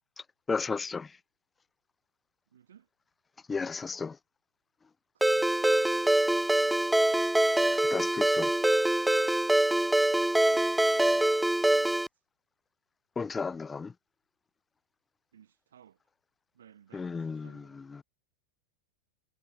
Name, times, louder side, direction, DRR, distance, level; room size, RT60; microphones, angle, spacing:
voice 1, 0.5-1.2 3.5-4.2 7.7-8.5 13.2-13.9 16.9-18.0, left 5 dB, 15° left, 1.0 m, -34 dB
voice 2, 2.5-2.9 5.1-7.4 10.5-12.1 15.3-16.0 16.5-17.8, right 9 dB, 65° right, 8.0 m, -58 dB
Ringtone, 5.2-12.1, right 1 dB, 5° right, 0.4 m, -24 dB
figure-of-eight pair, 90°, 0 cm